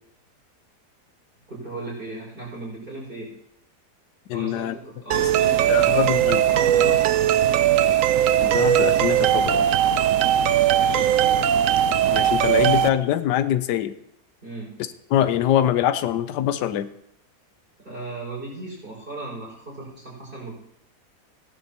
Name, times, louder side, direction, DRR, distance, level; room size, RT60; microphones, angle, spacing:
voice 1, 1.5-3.3 4.3-6.0 6.5-7.4 10.7-11.1 14.4-14.8 17.8-20.5, right 2 dB, 30° right, -4 dB, 5.7 m, -36 dB
voice 2, 4.3-4.7 5.7-6.5 8.4-9.7 12.1-13.9 15.1-16.9, left 11 dB, 90° left, 12 dB, 1.3 m, -23 dB
sound 1, 5.1-12.9, right 10 dB, 70° right, 0.8 m, -19 dB
17.5 x 11.0 x 2.9 m, 0.76 s
omnidirectional pair, 1.8 m